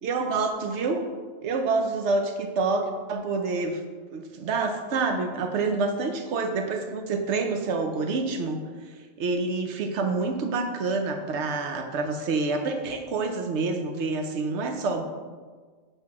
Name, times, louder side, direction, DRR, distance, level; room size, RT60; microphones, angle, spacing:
voice 1, 0.0-1.0 1.4-3.8 4.1-8.6 9.2-15.0, right 3 dB, 65° right, 5 dB, 1.0 m, -27 dB
7.6 x 3.3 x 4.7 m, 1.5 s
omnidirectional pair, 1.3 m